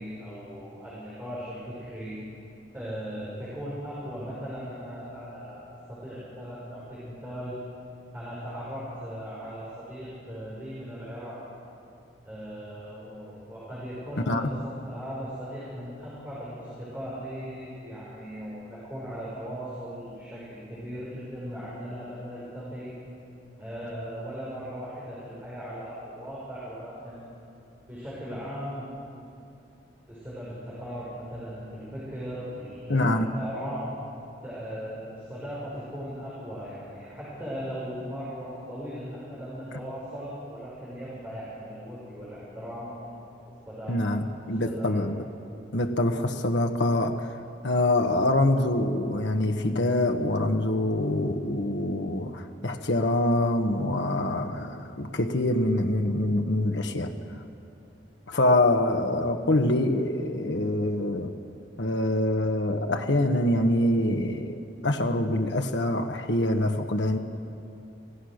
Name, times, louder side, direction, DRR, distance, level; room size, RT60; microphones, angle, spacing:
voice 1, 0.0-2.1 2.7-7.6 8.1-11.4 12.3-22.9 23.6-27.3 27.9-29.0 30.1-33.9 34.4-43.1 43.7-44.1 44.4-45.0, equal, 10° right, -8 dB, 5.7 m, -38 dB
voice 2, 32.9-33.3 43.9-45.2 45.7-47.3 47.6-57.1 58.3-61.3 61.8-67.2, left 1 dB, 80° left, 4 dB, 1.2 m, -25 dB
26.5 x 17.0 x 6.5 m, 2.6 s
head